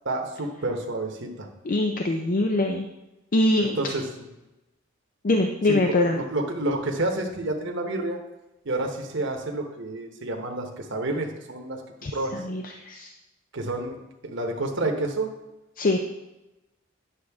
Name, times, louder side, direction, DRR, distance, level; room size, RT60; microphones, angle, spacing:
voice 1, 0.0-1.5 3.6-4.0 5.7-8.2 8.6-11.8 12.1-12.3 13.5-14.0 14.2-15.3, right 2 dB, 60° right, 2 dB, 1.1 m, -29 dB
voice 2, 1.6-2.9 3.3-3.8 5.2-6.2 12.0-13.1 15.8-16.0, left 2 dB, 45° left, 4 dB, 0.5 m, -23 dB
9.9 x 6.3 x 3.5 m, 0.99 s
head